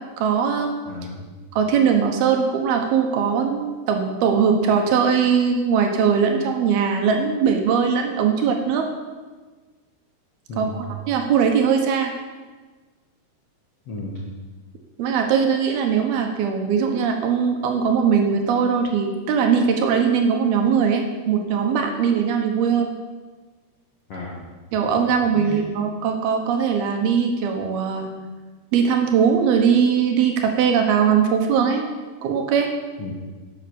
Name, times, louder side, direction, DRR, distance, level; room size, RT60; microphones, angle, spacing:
voice 1, 0.2-0.9 1.5-8.9 10.6-12.1 15.0-22.9 24.7-28.1 28.7-31.8 32.2-32.7, right 6 dB, 70° right, 4 dB, 2.9 m, -20 dB
voice 2, 0.9-1.2 10.5-10.8 13.9-14.2 24.1-24.4 25.3-25.7 33.0-33.1, left 2 dB, 55° left, -3 dB, 1.7 m, -33 dB
11.0 x 7.9 x 7.0 m, 1.3 s
omnidirectional pair, 4.8 m